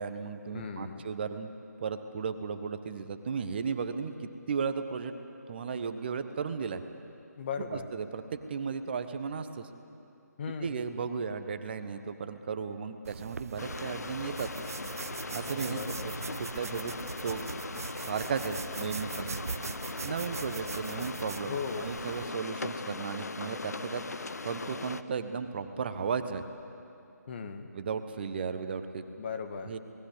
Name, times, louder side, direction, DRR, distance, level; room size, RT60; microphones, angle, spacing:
voice 1, 0.0-1.5 1.8-5.1 5.5-6.8 7.7-9.7 10.6-14.5 15.3-15.8 16.4-16.9 17.2-17.4 18.0-19.3 20.0-26.4 27.7-29.0 29.6-29.8, right 6 dB, 35° right, 9 dB, 1.3 m, -35 dB
voice 2, 0.5-1.0 7.4-7.9 10.4-10.8 15.7-16.1 21.5-21.9 27.3-27.7 29.2-29.7, left 6 dB, 35° left, 6 dB, 1.6 m, -37 dB
sound 1, 13.1-22.3, right 5 dB, 55° right, 0.5 m, -41 dB
sound 2, 13.6-25.0, left 3 dB, 65° left, 1.0 m, -39 dB
28.5 x 19.0 x 8.2 m, 2.8 s
figure-of-eight pair, 150°, 9 cm